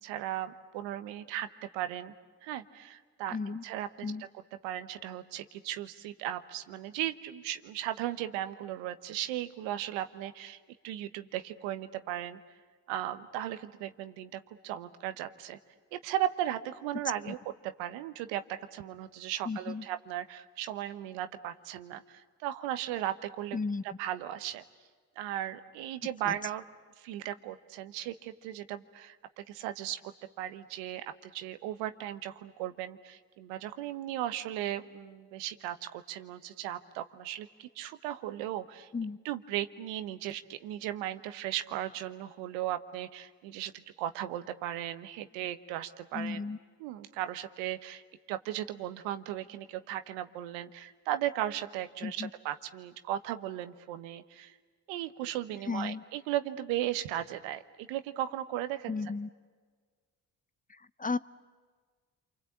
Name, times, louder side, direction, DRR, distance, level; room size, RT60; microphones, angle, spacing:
voice 1, 0.0-1.5 1.7-2.1 2.4-3.4 3.6-4.1 4.6-12.4 12.9-15.6 15.9-17.4 17.6-18.4 18.7-23.6 23.8-24.6 25.2-26.6 27.0-38.9 39.2-46.4 46.8-48.0 48.3-54.6 54.9-58.9, right 12 dB, 90° right, 11 dB, 1.1 m, -36 dB
voice 2, 3.3-3.6 4.0-4.2 17.3-17.4 19.5-19.9 23.5-23.8 26.3-26.4 38.9-39.2 46.1-46.6 52.0-52.3 55.7-56.0 58.9-59.3 60.7-61.2, left 4 dB, 20° left, 17 dB, 0.7 m, -34 dB
28.5 x 24.5 x 8.5 m, 1.5 s
supercardioid pair, 55°, 43 cm